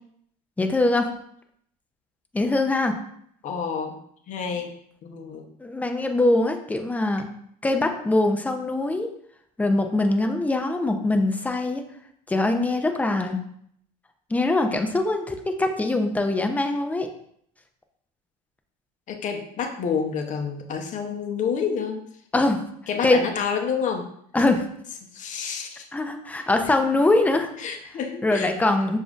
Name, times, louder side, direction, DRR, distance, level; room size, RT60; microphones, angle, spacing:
voice 1, 0.6-1.1 2.3-2.9 5.6-7.3 7.6-9.1 9.6-11.8 12.3-13.4 14.3-17.1 22.3-22.6 23.0-23.2 24.3-24.6 25.9-27.5 28.2-29.0, left 2 dB, 10° left, 5 dB, 0.5 m, -22 dB
voice 2, 3.4-4.0 4.3-4.7 5.0-5.5 19.1-22.0 22.9-24.1 25.1-25.9 27.6-28.5, left 6 dB, 45° left, 5 dB, 0.7 m, -28 dB
6.9 x 2.6 x 2.4 m, 0.68 s
supercardioid pair, 100°, 18 cm